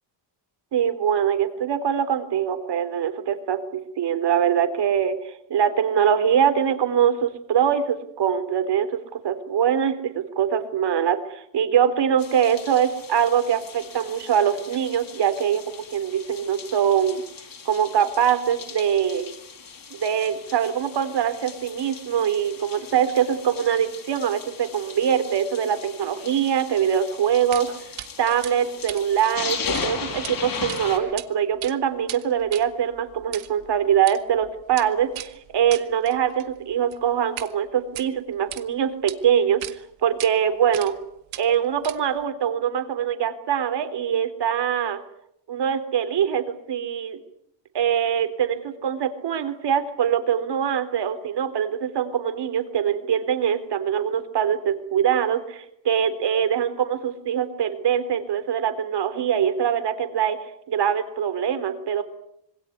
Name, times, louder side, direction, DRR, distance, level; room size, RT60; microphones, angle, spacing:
voice 1, 0.7-17.2 17.7-19.3 19.9-27.8 28.2-39.6 40.0-40.9 41.4-45.0 45.5-47.2 47.7-60.4 60.7-62.0, right 8 dB, 60° right, 10 dB, 3.8 m, -23 dB
sound 1, 12.2-31.0, left 5 dB, 45° left, 6.3 m, -37 dB
sound 2, 27.5-27.7 28.0-28.1 28.4-29.9 30.1-30.3 30.7-31.3 31.5-37.5 37.8-38.6 39.1-39.2 39.6-39.8 40.2-40.3 40.7-41.0 41.3-42.2, right 14 dB, 85° right, 1.9 m, -38 dB
26.5 x 21.0 x 9.5 m, 0.74 s
cardioid pair, 110°, 46 cm